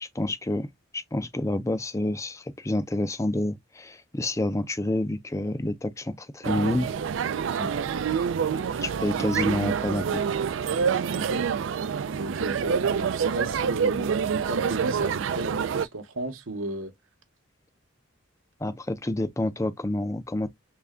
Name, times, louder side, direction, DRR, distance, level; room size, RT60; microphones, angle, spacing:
voice 1, 0.0-6.9 8.7-10.2 18.6-20.5, left 1 dB, 15° left, 0.4 m, -28 dB
sound 1, 6.4-15.9, right 6 dB, 65° right, 0.3 m, -27 dB
voice 2, 12.2-16.9, right 2 dB, 90° right, 1.0 m, -34 dB
3.3 x 2.3 x 3.6 m
head